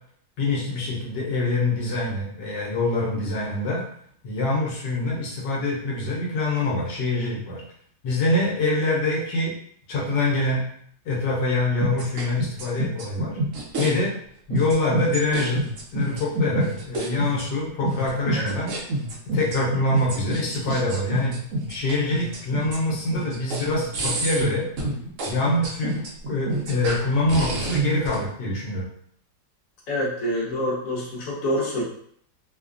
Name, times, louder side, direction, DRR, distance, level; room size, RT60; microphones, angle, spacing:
voice 1, 0.4-3.8 4.2-7.6 8.0-9.5 9.9-10.6 11.0-13.4 13.8-14.1 14.5-15.6 15.9-18.7 19.3-21.4 21.7-24.7 25.3-26.0 26.3-28.9, left 2 dB, 85° left, -4 dB, 1.4 m, -25 dB
sound 1, 11.8-13.9 14.5-28.2, right 1 dB, 60° right, 0.9 m, -27 dB
voice 2, 29.9-31.8, left 1 dB, 55° left, -5 dB, 1.3 m, -26 dB
3.2 x 2.2 x 2.4 m, 0.64 s
omnidirectional pair, 1.8 m